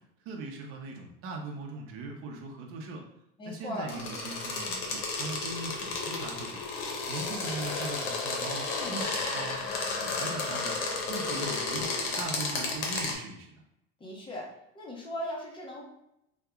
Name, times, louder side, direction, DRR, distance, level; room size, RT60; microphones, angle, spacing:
voice 1, 0.2-3.0 3.4-6.6 7.1-9.6 10.0-13.5, right 3 dB, 45° right, 1 dB, 0.6 m, -40 dB
voice 2, 3.4-3.9 8.6-9.1 14.0-14.5 14.7-15.8, left 1 dB, 15° left, -2 dB, 0.6 m, -38 dB
sound 1, 3.9-13.1, left 3 dB, 65° left, 0.9 m, -33 dB
2.8 x 2.2 x 3.5 m, 0.82 s
cardioid pair, 140°, 33 cm